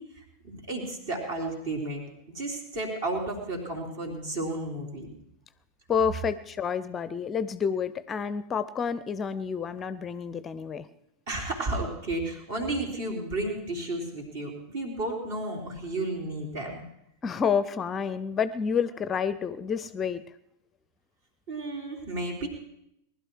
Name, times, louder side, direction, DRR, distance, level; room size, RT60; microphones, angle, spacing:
voice 1, 0.0-2.0 2.3-5.1 11.3-16.8 21.5-22.5, right 2 dB, 55° right, 1 dB, 3.7 m, -32 dB
voice 2, 5.9-10.9 17.2-20.2, left 6 dB, 20° left, 15 dB, 0.5 m, -29 dB
20.0 x 12.0 x 4.7 m, 0.79 s
figure-of-eight pair, 90°, 0 cm